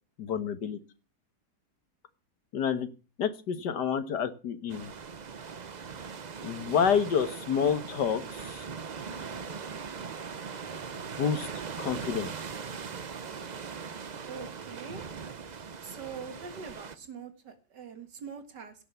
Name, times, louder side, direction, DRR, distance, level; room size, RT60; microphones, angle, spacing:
voice 1, 0.2-0.8 2.5-2.9 3.2-4.9 6.4-8.6 11.2-11.5 11.8-12.3, left 7 dB, 80° left, 12 dB, 1.9 m, -28 dB
sound 1, 4.7-17.0, right 6 dB, 45° right, 0.5 m, -40 dB
voice 2, 14.3-15.0 15.8-18.7, right 5 dB, 90° right, 8 dB, 2.5 m, -43 dB
17.0 x 6.9 x 7.1 m, 0.35 s
omnidirectional pair, 1.8 m